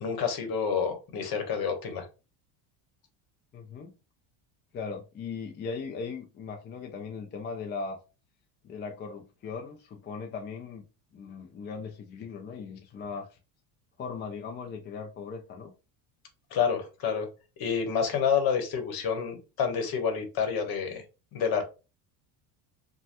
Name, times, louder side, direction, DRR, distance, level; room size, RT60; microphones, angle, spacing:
voice 1, 0.0-2.1 16.5-17.3 17.6-21.0 21.3-21.6, left 7 dB, 50° left, 1.0 m, -28 dB
voice 2, 3.5-3.9 4.7-8.0 8.6-10.8 11.1-13.4 14.0-15.7, left 5 dB, 25° left, 0.3 m, -38 dB
3.1 x 2.2 x 2.8 m
cardioid pair, 125°, 47 cm